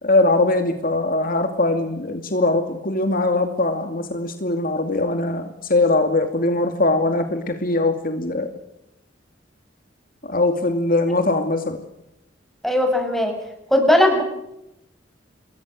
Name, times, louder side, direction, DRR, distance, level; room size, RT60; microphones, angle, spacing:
voice 1, 0.0-8.5 10.2-11.8, left 2 dB, 50° left, 6 dB, 2.6 m, -21 dB
voice 2, 12.6-13.4 13.7-14.2, left 1 dB, ahead, 3 dB, 7.0 m, -18 dB
28.5 x 21.5 x 6.6 m, 0.85 s
head